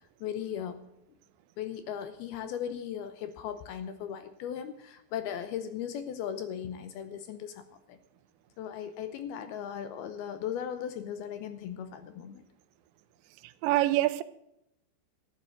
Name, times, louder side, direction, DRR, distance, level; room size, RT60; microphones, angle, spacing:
voice 1, 0.2-0.8 1.6-8.0 8.6-12.4, left 9 dB, 75° left, 2.5 m, -37 dB
voice 2, 13.4-14.2, right 16 dB, 85° right, 2.9 m, -26 dB
14.0 x 9.7 x 6.6 m
omnidirectional pair, 5.1 m